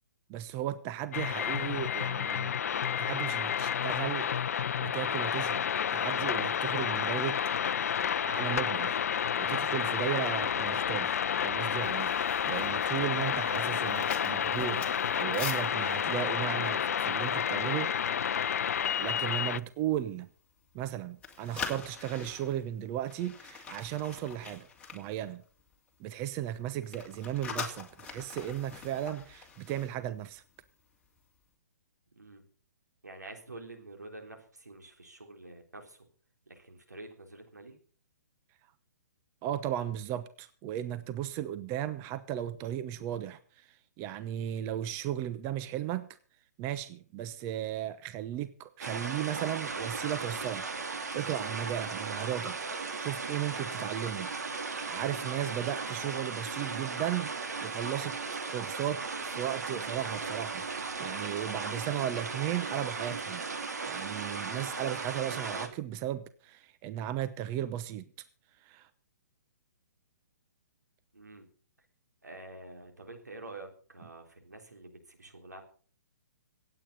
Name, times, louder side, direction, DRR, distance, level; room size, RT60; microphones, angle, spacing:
voice 1, 0.3-2.6 3.0-5.6 5.9-7.4 7.7-7.9 8.2-9.0 9.4-18.6 19.0-20.3 20.7-25.4 26.0-30.4 39.4-46.2 46.6-57.3 57.6-58.2 58.5-63.4 63.8-68.1 68.6-68.9, right 11 dB, 30° right, 12 dB, 0.9 m, -36 dB
sound 1, 1.1-19.6, left 8 dB, 60° left, 0.6 m, -30 dB
sound 2, 11.8-17.9 18.2-18.4 18.8-19.1 19.6-20.9 21.1-25.9 26.2-30.7 30.9-31.2, left 6 dB, 10° left, 2.6 m, -44 dB
voice 2, 33.0-36.1 36.5-37.8 71.1-71.5 72.2-75.6, right 2 dB, 90° right, 3 dB, 3.6 m, -48 dB
sound 3, 48.8-65.7, right 4 dB, 75° right, 2.6 m, -36 dB
25.5 x 9.0 x 4.1 m, 0.42 s
figure-of-eight pair, 130°, 9 cm